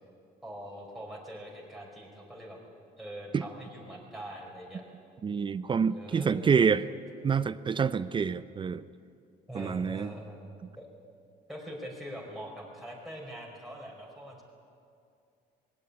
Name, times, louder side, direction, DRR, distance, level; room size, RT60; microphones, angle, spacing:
voice 1, 0.4-2.6 3.0-4.8 5.9-6.7 9.5-10.9 11.5-14.4, equal, ahead, -3 dB, 4.7 m, -43 dB
voice 2, 5.2-6.8 7.2-8.8 9.5-10.1, right 6 dB, 30° right, 15 dB, 0.5 m, -27 dB
20.0 x 17.5 x 9.7 m, 2.4 s
cardioid pair, 110°, 17 cm